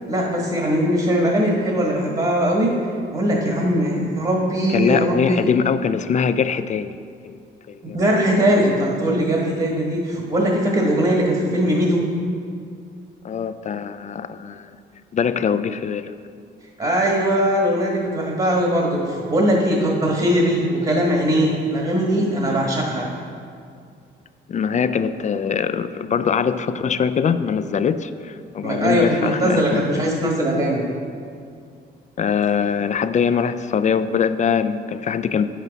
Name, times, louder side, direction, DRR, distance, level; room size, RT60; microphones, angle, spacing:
voice 1, 0.1-2.8 3.1-5.4 7.9-12.1 16.8-23.0 28.6-30.8, equal, 30° right, -1 dB, 1.4 m, -20 dB
voice 2, 4.7-7.0 7.2-7.4 7.7-8.0 13.2-14.7 15.1-16.1 24.5-30.1 32.2-35.5, left 7 dB, 40° left, 13 dB, 0.4 m, -22 dB
9.2 x 7.5 x 4.0 m, 2.3 s
cardioid pair, 90°, 20 cm